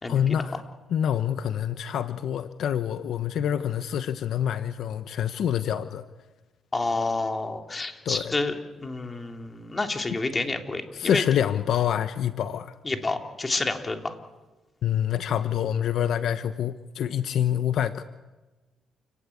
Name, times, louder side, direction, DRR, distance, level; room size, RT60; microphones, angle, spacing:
voice 1, 0.1-0.6 0.9-6.0 8.0-8.3 10.9-12.8 14.8-18.0, left 9 dB, 70° left, 11 dB, 1.0 m, -26 dB
voice 2, 6.7-8.5 8.8-11.2 12.8-14.1, left 3 dB, 25° left, 5 dB, 3.1 m, -29 dB
29.0 x 18.0 x 8.6 m, 1.2 s
cardioid pair, 90°, 0 cm